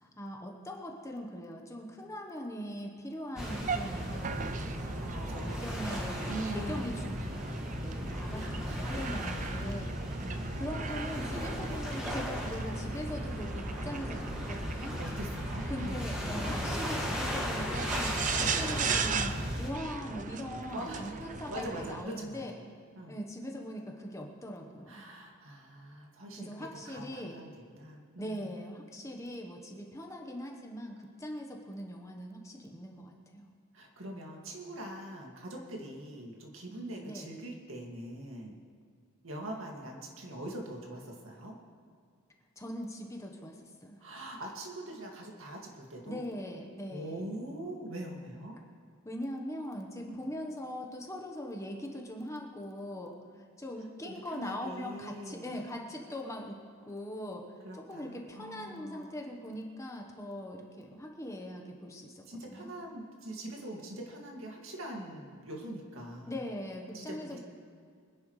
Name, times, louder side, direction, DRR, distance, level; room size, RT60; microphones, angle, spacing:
voice 1, 0.0-7.1 7.8-9.9 10.6-15.0 15.7-22.5 23.1-25.1 26.4-27.4 28.2-33.5 37.0-37.3 42.6-44.0 46.1-47.2 49.0-56.6 56.8-57.4 57.7-62.7 66.3-67.4, equal, 15° left, 1 dB, 1.1 m, -41 dB
sound 1, 3.4-19.7, left 1 dB, 5° right, 2.0 m, -36 dB
sound 2, 3.4-22.0, right 5 dB, 35° right, 0.5 m, -38 dB
voice 2, 5.1-5.8 6.2-7.1 8.3-8.8 9.6-10.6 15.0-16.1 16.7-16.8 20.7-21.2 21.5-22.6 23.0-23.1 24.9-28.5 33.7-38.6 39.2-41.6 44.0-46.2 46.9-48.6 50.0-50.2 54.0-55.6 57.6-59.1 62.3-66.4 66.9-67.4, right 1 dB, 65° right, 0 dB, 2.2 m, -43 dB
24.0 x 10.5 x 3.2 m, 2.1 s
head